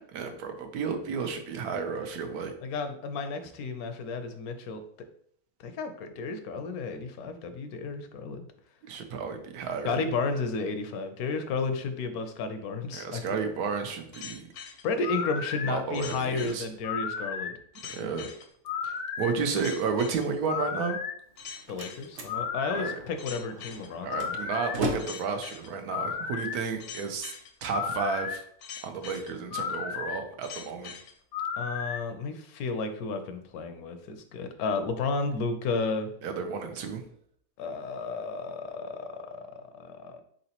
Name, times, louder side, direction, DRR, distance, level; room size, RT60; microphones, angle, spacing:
voice 1, 0.1-2.5 8.8-10.0 12.9-14.4 15.6-16.7 18.0-18.3 18.8-21.0 22.7-23.0 24.0-27.3 27.6-28.4 28.8-30.9 36.2-37.0, right 5 dB, 90° right, 6 dB, 1.2 m, -32 dB
voice 2, 2.6-4.8 5.6-8.5 9.8-13.4 14.8-17.5 17.8-18.0 21.7-24.3 31.6-36.1 37.6-40.2, left 4 dB, 80° left, 8 dB, 1.1 m, -32 dB
sound 1, 14.1-32.0, left 6 dB, 65° left, 0.8 m, -35 dB
Slam, 21.2-27.2, right 1 dB, 50° right, 0.7 m, -38 dB
4.2 x 3.8 x 2.8 m, 0.65 s
omnidirectional pair, 1.5 m